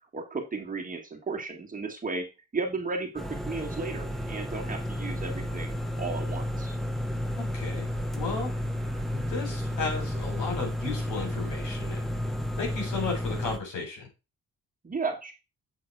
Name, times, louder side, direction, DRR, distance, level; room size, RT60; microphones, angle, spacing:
voice 1, 0.1-2.3 2.5-6.8 14.8-15.3, right 4 dB, 25° right, 1 dB, 1.8 m, -34 dB
sound 1, 3.2-13.6, equal, ahead, 1.0 m, -32 dB
voice 2, 7.4-8.5 9.1-12.0 12.6-14.1, left 4 dB, 85° left, 1 dB, 3.8 m, -34 dB
7.8 x 3.9 x 4.6 m, 0.28 s
cardioid pair, 90°, 30 cm